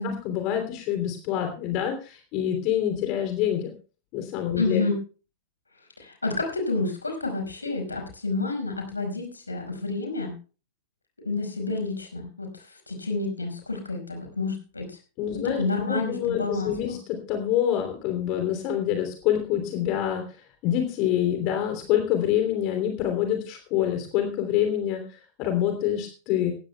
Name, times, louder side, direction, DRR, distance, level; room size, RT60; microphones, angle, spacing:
voice 1, 0.0-3.7 4.1-4.9 15.2-20.4 20.6-26.5, left 10 dB, 40° left, 5 dB, 3.1 m, -26 dB
voice 2, 4.5-5.0 6.0-10.3 11.2-15.0 15.4-17.0, left 3 dB, 80° left, 4 dB, 5.0 m, -29 dB
18.5 x 16.0 x 2.3 m, 0.35 s
figure-of-eight pair, 90°, 0 cm